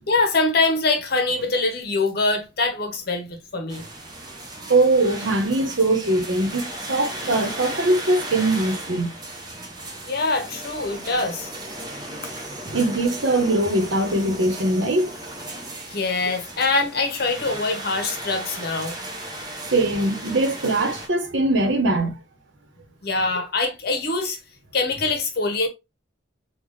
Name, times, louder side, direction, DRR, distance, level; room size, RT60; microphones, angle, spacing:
voice 1, 0.0-3.8 10.1-11.5 15.9-18.9 23.0-24.4 24.7-25.7, left 3 dB, 50° left, 0.9 m, -24 dB
sound 1, 3.7-21.1, right 1 dB, 20° right, 0.8 m, -36 dB
voice 2, 4.7-9.1 12.6-15.1 19.7-22.2, right 2 dB, 70° right, 1.0 m, -21 dB
3.9 x 2.3 x 3.1 m
head